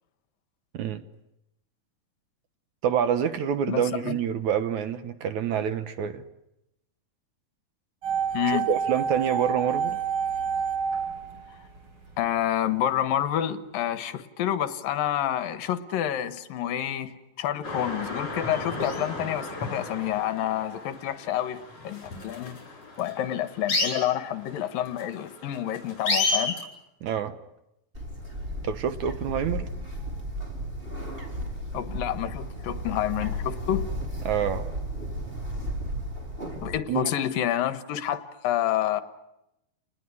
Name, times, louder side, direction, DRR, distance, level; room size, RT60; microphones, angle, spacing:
voice 1, 2.8-6.2 8.7-10.0 27.0-27.4 28.6-29.7 34.3-34.7 36.9-37.1, right 8 dB, 65° right, 2.2 m, -27 dB
voice 2, 3.7-4.2 8.3-8.7 12.2-22.6 23.0-26.6 31.7-33.8 36.6-39.0, left 11 dB, 75° left, 3.0 m, -28 dB
sound 1, 8.0-12.1 12.4-12.5, right 7 dB, 35° right, 5.1 m, -28 dB
sound 2, 17.6-26.6, left 2 dB, 45° left, 7.1 m, -32 dB
Bird, 27.9-36.8, equal, 15° right, 5.1 m, -34 dB
29.5 x 20.5 x 9.9 m
omnidirectional pair, 4.1 m